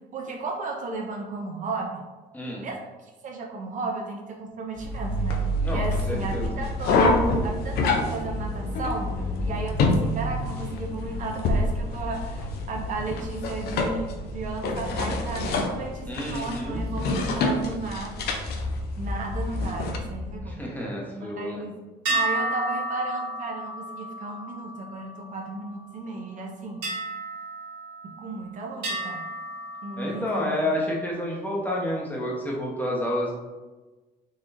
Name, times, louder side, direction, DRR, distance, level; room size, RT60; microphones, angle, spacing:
voice 1, 0.1-2.0 2.6-2.8 3.2-5.4 5.7-7.1 7.4-9.1 9.4-18.3 19.0-20.6 21.1-21.8 22.1-26.8 28.2-29.2 29.8-30.6, right 3 dB, 50° right, 1 dB, 0.5 m, -34 dB
voice 2, 2.3-2.7 5.6-6.5 16.1-16.8 20.4-21.6 30.0-33.3, left 1 dB, 10° left, -4 dB, 0.9 m, -29 dB
sound 1, 4.8-20.0, left 2 dB, 70° left, 0.5 m, -27 dB
sound 2, 13.7-20.5, left 2 dB, 45° left, 1.4 m, -36 dB
sound 3, 22.0-25.7 26.8-28.4 28.8-30.5, right 2 dB, 80° right, 1.5 m, -32 dB
3.9 x 3.0 x 2.5 m, 1.2 s
cardioid pair, 110°, 17 cm